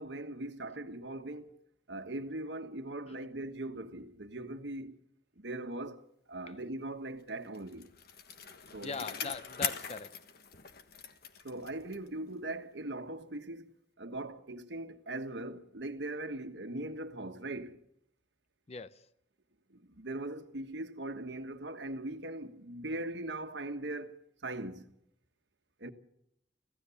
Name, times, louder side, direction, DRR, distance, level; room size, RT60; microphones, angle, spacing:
voice 1, 0.0-1.6 1.9-5.0 5.4-7.9 8.7-8.9 9.2-9.3 11.4-17.8 19.7-24.9 25.8-25.9, right 2 dB, 80° right, 1.3 m, -40 dB
Bicycle, 7.3-12.2 12.5-12.6, left 7 dB, 60° left, 1.5 m, -41 dB
voice 2, 8.8-10.2 18.7-19.1, left 4 dB, 35° left, 0.7 m, -41 dB
25.5 x 15.5 x 7.0 m
head